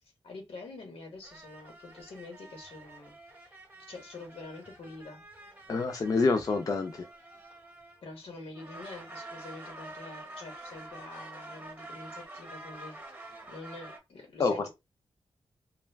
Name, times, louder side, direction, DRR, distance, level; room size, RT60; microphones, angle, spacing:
voice 1, 0.2-3.2 3.5-5.2 8.0-14.6, left 3 dB, 90° left, 1.0 m, -46 dB
sound 1, 1.2-8.2 8.5-14.0, right 2 dB, 20° right, 0.7 m, -48 dB
voice 2, 5.7-7.1 14.4-14.7, left 4 dB, 40° left, 0.4 m, -27 dB
2.3 x 2.2 x 3.3 m
wide cardioid pair, 160°, 10 cm